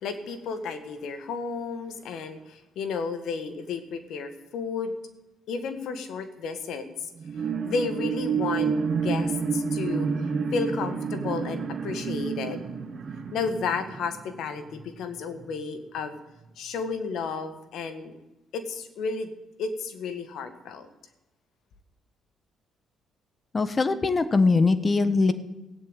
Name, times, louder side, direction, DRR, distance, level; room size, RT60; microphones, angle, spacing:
voice 1, 0.0-4.9 5.5-6.9 7.6-10.1 10.5-12.6 13.3-16.2 16.6-18.1 18.5-19.3 19.6-20.9, left 5 dB, 80° left, 8 dB, 1.8 m, -32 dB
sound 1, 7.2-15.0 15.4-15.5, right 5 dB, 50° right, 1.5 m, -29 dB
voice 2, 23.5-25.3, left 3 dB, 30° left, 12 dB, 1.2 m, -21 dB
16.5 x 8.0 x 9.1 m, 0.97 s
cardioid pair, 90°, 0 cm